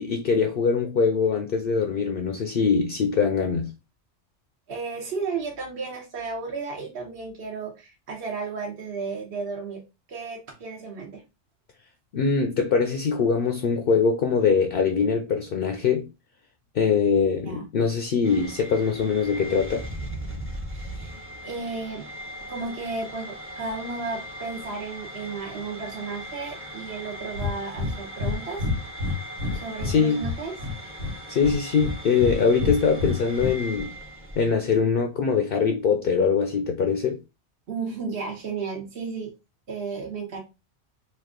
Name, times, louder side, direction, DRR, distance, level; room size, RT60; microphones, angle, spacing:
voice 1, 0.0-3.7 12.1-16.1 16.7-19.9 29.8-30.2 31.3-33.9 34.4-37.2, left 5 dB, 60° left, 0.7 m, -23 dB
voice 2, 4.7-9.8 10.1-11.2 17.4-17.7 20.7-21.1 21.4-22.1 22.5-28.7 29.5-30.5 37.7-39.3 39.7-40.4, right 4 dB, 60° right, 1.0 m, -33 dB
sound 1, 18.2-34.5, equal, 15° right, 0.7 m, -39 dB
Breathing, 27.3-27.5 27.8-27.9 28.2-28.3 28.6-30.0 30.2-31.1 31.4-32.3 32.6-33.5, left 3 dB, 90° right, 1.3 m, -27 dB
3.1 x 2.3 x 3.6 m
omnidirectional pair, 1.2 m